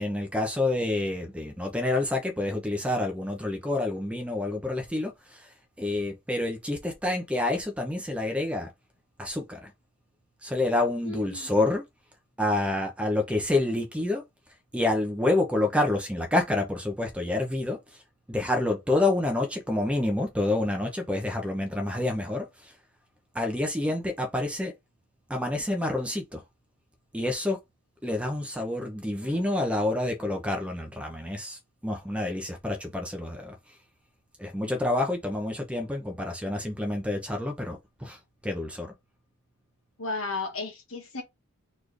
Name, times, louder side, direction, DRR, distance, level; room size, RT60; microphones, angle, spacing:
voice 1, 0.0-8.7 9.2-9.7 10.4-11.8 12.4-14.2 14.7-18.0 18.3-22.7 23.3-24.7 25.3-26.4 27.1-27.6 28.0-33.6 34.4-38.9, left 2 dB, 5° right, 0.7 m, -28 dB
voice 2, 11.0-11.5 29.2-29.5 40.0-41.2, left 3 dB, 65° left, 1.4 m, -34 dB
4.2 x 3.2 x 3.3 m
head